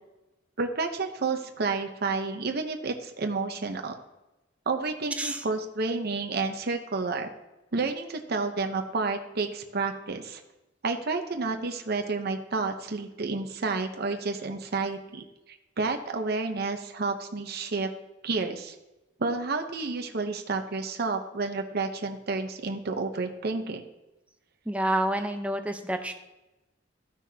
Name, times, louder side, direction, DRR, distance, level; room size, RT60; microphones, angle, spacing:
voice 1, 0.6-4.0 4.7-7.3 7.7-10.4 10.8-15.2 15.8-17.9 18.2-18.8 19.2-23.8, right 3 dB, 55° right, 5 dB, 0.8 m, -30 dB
voice 2, 5.2-5.5 24.7-26.1, right 1 dB, 5° right, 5 dB, 0.7 m, -28 dB
14.0 x 6.2 x 2.8 m, 1.0 s
head